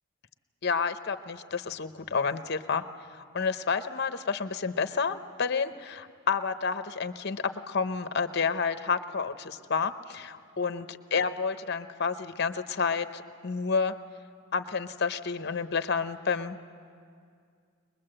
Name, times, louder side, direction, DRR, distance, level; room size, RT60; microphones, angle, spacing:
voice 1, 0.6-2.8 3.1-13.9 14.5-16.7, left 5 dB, 55° left, 11 dB, 0.7 m, -30 dB
22.0 x 21.0 x 7.7 m, 2.2 s
head